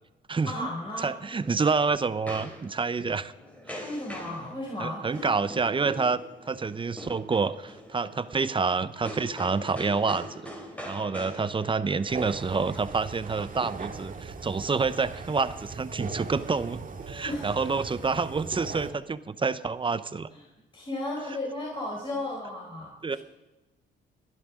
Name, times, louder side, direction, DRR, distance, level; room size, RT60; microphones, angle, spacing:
voice 1, 0.5-1.1 3.8-5.6 17.2-17.7 20.7-23.2, left 1 dB, 25° left, -3 dB, 4.5 m, -35 dB
voice 2, 1.0-3.3 3.7-3.8 4.8-6.2 6.5-10.4 10.9-20.3 23.0-23.2, right 4 dB, 25° right, 14 dB, 0.8 m, -28 dB
sound 1, 1.2-13.6, equal, 5° left, 3.6 m, -44 dB
sound 2, 12.1-18.9, right 4 dB, 40° right, 2.0 m, -39 dB
27.5 x 11.0 x 3.8 m, 1.1 s
cardioid pair, 90°, 20 cm